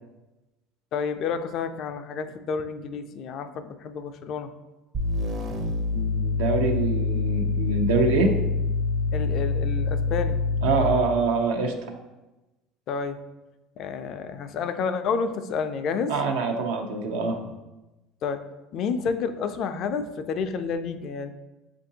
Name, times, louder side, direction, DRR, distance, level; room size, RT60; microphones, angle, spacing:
voice 1, 0.9-4.5 9.1-10.4 12.9-13.2 13.8-16.1 18.2-18.4 18.7-21.3, left 5 dB, 55° left, 9 dB, 0.4 m, -30 dB
sound 1, 4.9-11.1, left 3 dB, 45° right, 0.7 m, -26 dB
voice 2, 5.9-8.3 10.6-11.7 16.1-17.4, right 4 dB, 80° right, 3 dB, 0.7 m, -25 dB
7.4 x 2.5 x 2.7 m, 1.1 s
supercardioid pair, 90°, 0 cm